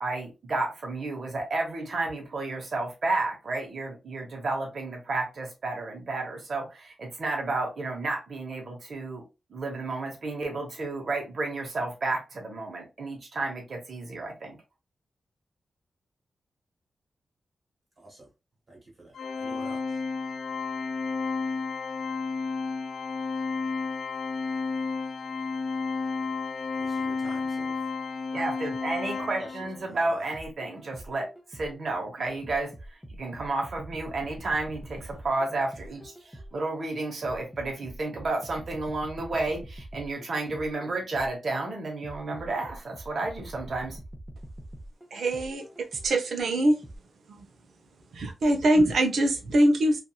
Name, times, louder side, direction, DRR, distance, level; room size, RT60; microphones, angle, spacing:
voice 1, 0.0-9.2 9.5-14.6 28.3-44.0, right 2 dB, 50° right, 0.9 m, -32 dB
voice 2, 18.0-18.3 18.7-20.0 26.8-27.8 29.0-30.3, right 2 dB, 35° right, 1.3 m, -48 dB
Organ, 19.2-29.9, left 4 dB, 65° left, 0.3 m, -32 dB
sound 1, 30.3-31.9 32.4-36.7 37.2-41.5 42.0-46.3 46.8-47.0, right 1 dB, ahead, 0.6 m, -45 dB
voice 3, 45.1-45.7 45.9-46.8 47.3-47.5 48.1-50.0, right 1 dB, 75° right, 0.6 m, -23 dB
2.9 x 2.5 x 2.3 m
wide cardioid pair, 165°, 0 cm